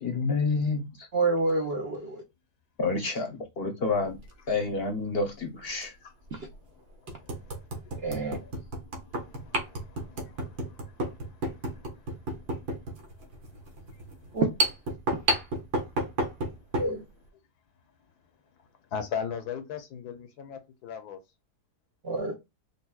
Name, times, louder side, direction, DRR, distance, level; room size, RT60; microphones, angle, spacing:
voice 1, 0.0-1.1 2.8-4.2 4.5-5.9, left 3 dB, 45° left, 0.8 m, -29 dB
voice 2, 1.1-2.2 6.3-6.4 8.0-8.4 14.3-14.5 16.8-17.0 22.0-22.3, right 3 dB, 55° right, 0.7 m, -27 dB
sound 1, 4.1-4.3 5.8-5.9 6.4-6.5 7.1-16.9, right 1 dB, 75° right, 1.7 m, -32 dB
voice 3, 7.1-7.6 8.0-8.5 9.1-11.9 18.9-21.2, left 7 dB, 75° left, 1.2 m, -39 dB
5.4 x 2.2 x 2.3 m
omnidirectional pair, 1.7 m